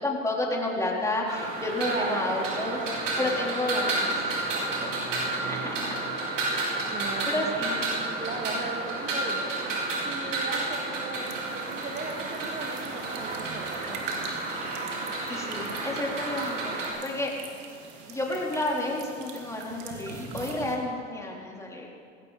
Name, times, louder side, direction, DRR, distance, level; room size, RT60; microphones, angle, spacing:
voice 1, 0.0-2.8 3.2-4.1 4.4-4.7 5.3-5.6 7.3-7.8 15.3-16.8 17.0-17.3 18.1-21.9, left 2 dB, 10° left, -2 dB, 3.7 m, -30 dB
sound 1, 1.3-16.9, right 2 dB, 80° right, 4.4 m, -31 dB
voice 2, 1.8-2.8 3.3-3.5 4.5-4.9 5.3-5.8 6.9-7.6 8.2-9.5 9.9-14.2, right 3 dB, 25° right, 0 dB, 2.0 m, -37 dB
sound 2, 11.2-20.8, right 4 dB, 50° right, 2.8 m, -43 dB
19.0 x 17.0 x 4.2 m, 2.4 s
hypercardioid pair, 90°, 37 cm